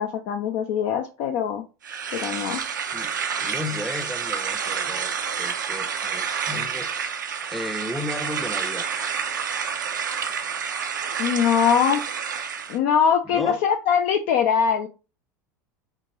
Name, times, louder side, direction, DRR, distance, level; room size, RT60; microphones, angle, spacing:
voice 1, 0.0-1.7 2.1-2.6 11.2-12.0 12.7-14.9, left 7 dB, 55° left, 0.5 m, -22 dB
sound 1, 1.8-12.8, right 6 dB, 85° right, 0.5 m, -29 dB
voice 2, 2.9-5.1 5.4-6.9 7.5-8.9 13.2-13.6, left 1 dB, ahead, 0.6 m, -34 dB
4.5 x 2.5 x 2.9 m
hypercardioid pair, 80°, 10 cm